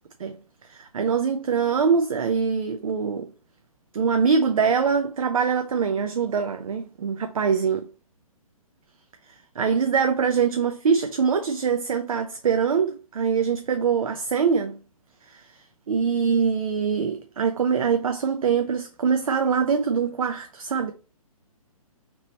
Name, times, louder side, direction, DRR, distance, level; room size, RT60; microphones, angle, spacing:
voice 1, 0.7-3.3 3.9-7.9 9.6-14.8 15.3-15.5 15.9-20.9, right 6 dB, 65° right, 0.4 m, -23 dB
3.0 x 2.9 x 2.9 m
figure-of-eight pair, 125°, 19 cm